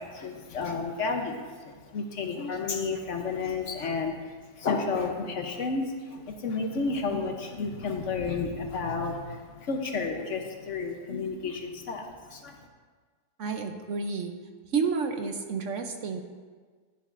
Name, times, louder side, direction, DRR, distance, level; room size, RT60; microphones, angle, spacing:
voice 1, 0.0-12.6, left 4 dB, 60° left, 4 dB, 1.0 m, -32 dB
voice 2, 13.4-14.4 14.7-16.2, right 5 dB, 60° right, 5 dB, 0.9 m, -30 dB
12.5 x 10.5 x 2.5 m, 1.5 s
omnidirectional pair, 1.6 m